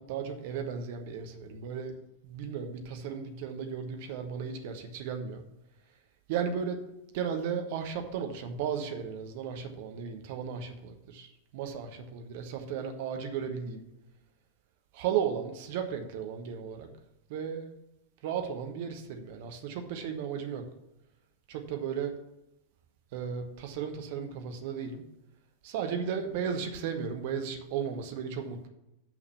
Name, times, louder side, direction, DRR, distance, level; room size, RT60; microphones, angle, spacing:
voice 1, 0.0-1.9 2.2-5.4 6.3-6.8 7.1-13.8 14.9-16.9 17.3-17.7 18.2-20.6 21.5-22.1 23.1-25.0 25.6-28.7, right 7 dB, 50° right, 6 dB, 1.2 m, -35 dB
6.5 x 6.0 x 7.0 m, 0.91 s
figure-of-eight pair, 90°, 0 cm